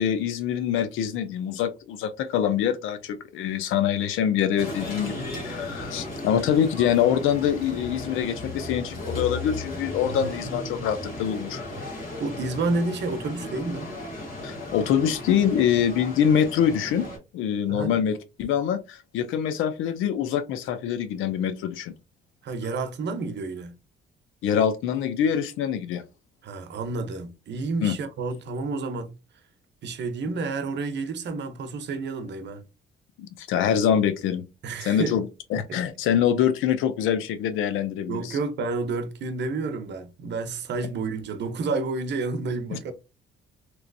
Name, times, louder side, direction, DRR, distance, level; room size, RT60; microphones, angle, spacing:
voice 1, 0.0-11.6 14.4-17.1 17.3-21.9 24.4-26.0 27.8-27.9 33.2-34.4 34.8-35.3 35.5-38.4 42.7-42.8, left 9 dB, 90° left, 0.5 m, -25 dB
sound 1, 4.6-17.2, left 2 dB, 50° left, 1.8 m, -35 dB
voice 2, 12.2-13.9 17.7-17.9 22.4-23.7 26.4-29.1 29.8-32.6 34.6-35.1 35.7-35.8 38.1-42.9, right 3 dB, 60° right, 0.7 m, -30 dB
3.0 x 3.0 x 2.6 m
cardioid pair, 90°, 20 cm